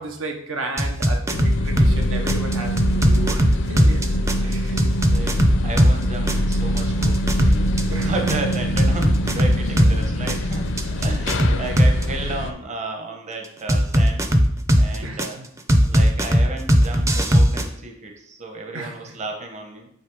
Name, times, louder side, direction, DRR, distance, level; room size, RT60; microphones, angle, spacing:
voice 1, 0.0-4.0 4.4-4.9 7.9-8.1 12.3-12.4 15.0-15.5 18.7-18.9, right 2 dB, 85° right, 3 dB, 1.1 m, -33 dB
sound 1, 0.8-2.0 2.3-6.0 6.3-10.0 10.3-12.0 13.7-15.3 15.7-17.6, equal, 15° right, 0.5 m, -17 dB
sound 2, 1.3-12.5, equal, 65° left, 0.5 m, -24 dB
voice 2, 3.7-4.0 4.4-14.3 14.7-15.4 15.8-19.9, right 2 dB, 35° right, 2 dB, 0.9 m, -33 dB
8.4 x 3.2 x 4.8 m, 0.73 s
head